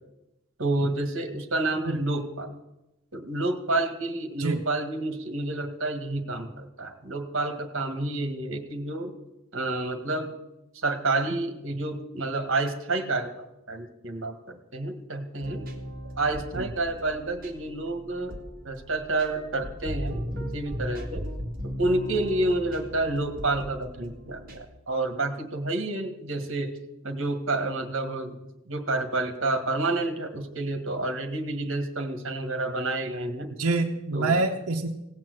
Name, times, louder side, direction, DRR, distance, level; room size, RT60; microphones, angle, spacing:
voice 1, 0.6-2.6 3.1-9.1 9.5-10.3 10.7-15.7 16.2-18.3 18.6-21.3 21.8-26.7 27.0-28.4 28.7-33.5 34.1-34.4, right 2 dB, 60° right, 6 dB, 1.7 m, -29 dB
sound 1, 15.4-24.6, equal, 40° right, 1.9 m, -37 dB
voice 2, 33.6-34.9, right 3 dB, 90° right, 2 dB, 1.0 m, -26 dB
17.0 x 7.6 x 7.8 m, 0.93 s
head